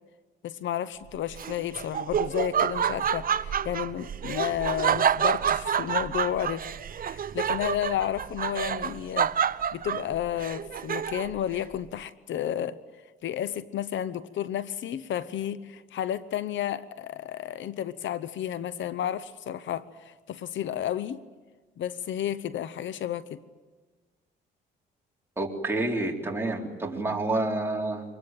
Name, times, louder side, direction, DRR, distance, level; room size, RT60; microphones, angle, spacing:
voice 1, 0.4-6.6 7.0-12.8 13.2-21.2 21.8-23.4, left 10 dB, 70° left, 15 dB, 0.9 m, -32 dB
Laughter, 1.3-11.4, right 8 dB, 45° right, 0.8 m, -28 dB
voice 2, 25.4-28.0, right 2 dB, 10° right, -1 dB, 3.9 m, -28 dB
25.0 x 21.0 x 9.1 m, 1.3 s
cardioid pair, 90°, 20 cm